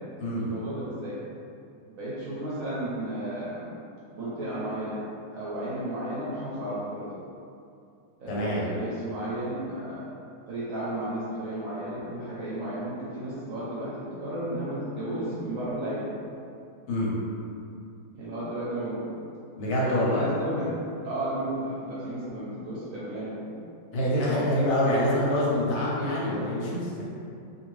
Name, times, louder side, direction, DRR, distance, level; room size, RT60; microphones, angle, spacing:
voice 1, 0.4-1.2 1.9-3.7 4.1-5.0 5.3-7.1 8.2-10.1 10.5-16.1 18.1-19.1 19.7-20.8 21.0-23.5, right 1 dB, 65° right, -9 dB, 0.9 m, -33 dB
voice 2, 8.3-8.6 16.9-17.1 19.6-20.3 23.9-27.2, left 1 dB, 70° left, -6 dB, 1.1 m, -26 dB
2.8 x 2.6 x 3.1 m, 2.5 s
omnidirectional pair, 1.9 m